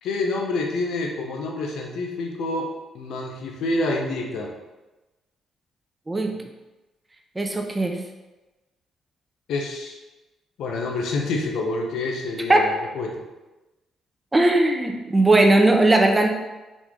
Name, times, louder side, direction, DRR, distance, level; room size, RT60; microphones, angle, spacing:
voice 1, 0.0-4.5 9.5-10.0 10.6-13.2, left 2 dB, 80° left, 1 dB, 0.6 m, -27 dB
voice 2, 6.1-6.4 7.4-8.0 12.5-12.6 14.3-16.3, right 2 dB, 15° right, 3 dB, 0.6 m, -18 dB
4.1 x 3.0 x 3.6 m, 1.1 s
cardioid pair, 90°, 0 cm